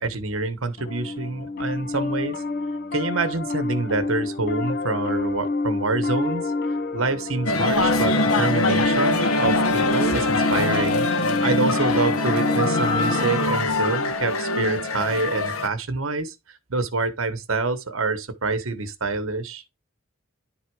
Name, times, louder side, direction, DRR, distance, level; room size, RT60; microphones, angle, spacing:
voice 1, 0.0-2.4 2.9-6.5 6.9-16.3 16.7-19.6, right 3 dB, 75° right, 1.1 m, -27 dB
Piano, 0.8-13.2, left 3 dB, 50° left, 0.6 m, -28 dB
sound 1, 7.5-15.7, left 2 dB, 85° left, 1.2 m, -23 dB
10.5 x 4.0 x 4.7 m
head